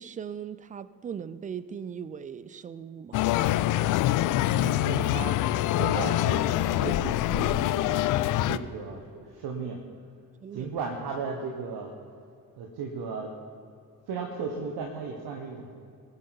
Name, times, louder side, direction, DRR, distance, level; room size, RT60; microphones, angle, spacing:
voice 1, 0.0-3.2 8.5-8.7 10.4-10.7, right 7 dB, 20° right, 16 dB, 0.3 m, -39 dB
sound 1, 3.1-8.6, left 14 dB, 45° left, 0.5 m, -25 dB
voice 2, 4.5-8.0 8.4-9.8 10.5-11.9 12.6-13.3 14.1-15.7, right 5 dB, 50° right, 2 dB, 1.4 m, -35 dB
20.0 x 8.0 x 4.3 m, 2.4 s
figure-of-eight pair, 45°, 47 cm